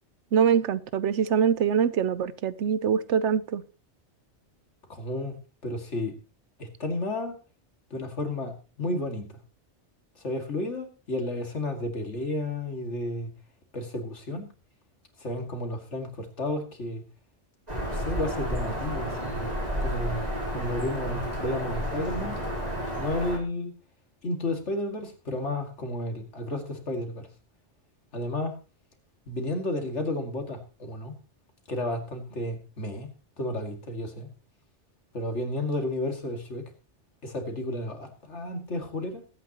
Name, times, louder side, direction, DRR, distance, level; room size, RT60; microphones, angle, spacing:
voice 1, 0.3-3.6, right 7 dB, 85° right, 1.1 m, -24 dB
voice 2, 4.9-5.4 5.6-6.2 6.6-7.4 7.9-9.3 10.2-13.3 13.7-14.5 15.2-17.0 17.8-19.5 19.8-22.4 23.0-23.7 24.2-27.3 28.1-28.6 29.3-31.1 31.7-33.1 33.4-34.3 35.1-36.6 37.2-39.2, left 1 dB, 85° left, 2.6 m, -32 dB
Bird vocalization bird call bird song, 17.7-23.4, equal, 35° right, 4.3 m, -31 dB
21.0 x 9.3 x 3.0 m
omnidirectional pair, 1.2 m